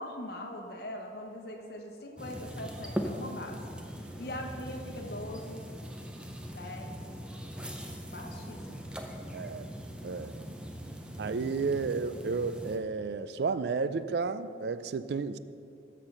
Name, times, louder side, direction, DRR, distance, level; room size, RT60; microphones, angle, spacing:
voice 1, 0.0-3.6 4.2-5.6 6.5-7.0 8.0-8.9, left 1 dB, 55° left, 2 dB, 0.9 m, -41 dB
sound 1, 2.2-12.8, equal, 5° right, 0.6 m, -41 dB
voice 2, 9.3-9.7 10.0-10.6 11.2-15.4, right 4 dB, 60° right, 14 dB, 0.3 m, -32 dB
13.0 x 4.4 x 6.5 m, 2.6 s
head